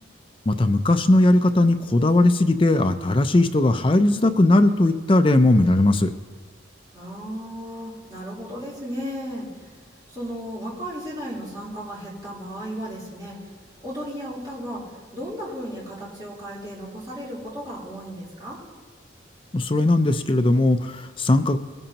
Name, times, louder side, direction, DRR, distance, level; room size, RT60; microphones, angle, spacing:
voice 1, 0.5-6.1 19.5-21.6, left 2 dB, 25° left, 8 dB, 0.5 m, -18 dB
voice 2, 6.9-9.7 10.1-13.4 13.8-14.8 15.1-18.6, equal, 20° right, -8 dB, 3.7 m, -35 dB
20.5 x 10.5 x 2.9 m, 1.5 s
head